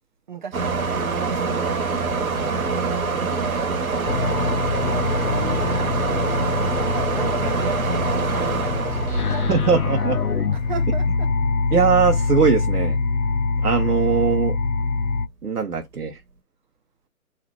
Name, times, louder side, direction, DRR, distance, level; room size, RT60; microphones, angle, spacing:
voice 1, 0.3-10.0 10.5-11.3, right 6 dB, 35° right, 0.6 m, -36 dB
sound 1, 0.5-10.7, right 4 dB, 65° right, 1.2 m, -25 dB
sound 2, 4.0-15.3, left 4 dB, 80° left, 0.9 m, -24 dB
voice 2, 9.5-10.2 11.7-13.0 13.6-14.6 15.4-16.2, right 6 dB, 90° right, 0.9 m, -20 dB
3.2 x 2.6 x 4.0 m
figure-of-eight pair, 140°, 45 cm